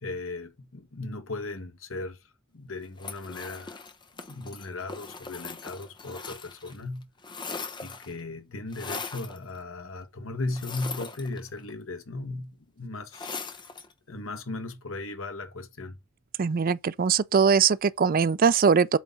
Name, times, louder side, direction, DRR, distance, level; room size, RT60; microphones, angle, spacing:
voice 1, 0.0-2.2 2.5-3.8 4.3-7.1 7.8-13.3 14.1-16.0, left 2 dB, 70° left, 1.5 m, -37 dB
sound 1, 3.0-6.8 7.0-8.2 8.7-9.4 10.5-11.7 13.1-13.9, left 4 dB, 20° left, 1.0 m, -39 dB
voice 2, 16.4-19.0, right 6 dB, 40° right, 0.4 m, -21 dB
8.2 x 3.9 x 5.5 m
head